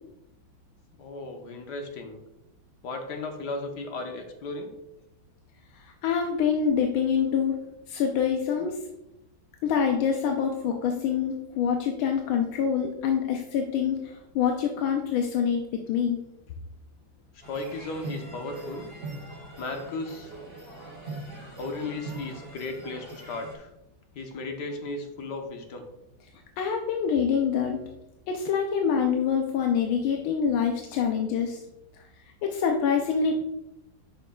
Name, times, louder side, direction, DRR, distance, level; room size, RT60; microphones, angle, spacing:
voice 1, 1.0-2.2 2.8-4.7 17.5-18.9 19.6-20.3 21.6-23.7 24.1-25.8, left 3 dB, 65° left, 4 dB, 1.4 m, -35 dB
voice 2, 5.7-7.6 7.9-8.8 9.6-15.6 15.9-16.2 26.6-27.8 28.3-31.6 32.4-33.4, left 7 dB, 85° left, 3 dB, 1.5 m, -26 dB
sound 1, 17.4-23.6, right 2 dB, 75° right, 2.8 m, -41 dB
8.1 x 6.0 x 2.3 m, 0.90 s
omnidirectional pair, 2.2 m